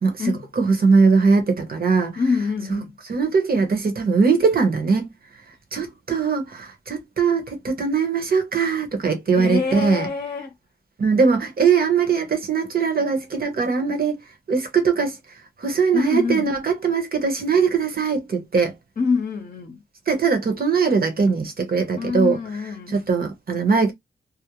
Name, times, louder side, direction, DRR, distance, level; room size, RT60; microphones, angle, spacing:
voice 1, 0.0-2.2 2.7-2.8 3.1-5.1 5.7-10.1 11.0-14.2 14.5-15.1 15.6-18.7 20.1-22.4 22.9-23.9, right 5 dB, 50° right, 0.9 m, -20 dB
voice 2, 2.2-2.9 9.3-10.5 15.9-16.5 19.0-19.8 22.0-23.0, left 4 dB, 45° left, 0.7 m, -25 dB
2.4 x 2.1 x 2.9 m
wide cardioid pair, 100°, 19 cm